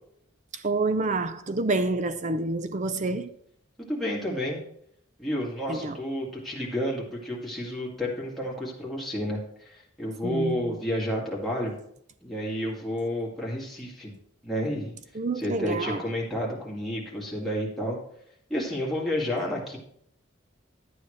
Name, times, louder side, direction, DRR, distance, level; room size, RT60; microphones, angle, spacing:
voice 1, 0.6-3.3 5.7-6.0 10.2-10.7 15.1-16.0, right 2 dB, 35° right, 0.6 m, -28 dB
voice 2, 3.8-4.6 5.2-9.4 9.6-11.8 12.2-14.1 14.4-14.9 15.4-18.0 18.5-19.8, equal, ahead, 2.4 m, -30 dB
12.0 x 8.9 x 3.3 m
head